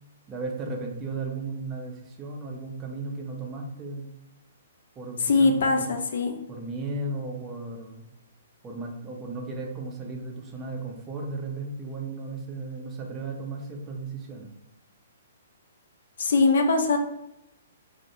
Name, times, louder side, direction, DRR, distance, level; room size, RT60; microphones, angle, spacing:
voice 1, 0.3-4.1 5.0-5.9 6.5-8.0 8.6-14.5, right 3 dB, 20° right, 0 dB, 0.4 m, -35 dB
voice 2, 5.2-6.4 16.2-17.0, left 3 dB, 60° left, 5 dB, 0.3 m, -22 dB
2.2 x 2.0 x 2.9 m, 0.86 s
figure-of-eight pair, 120°, 0 cm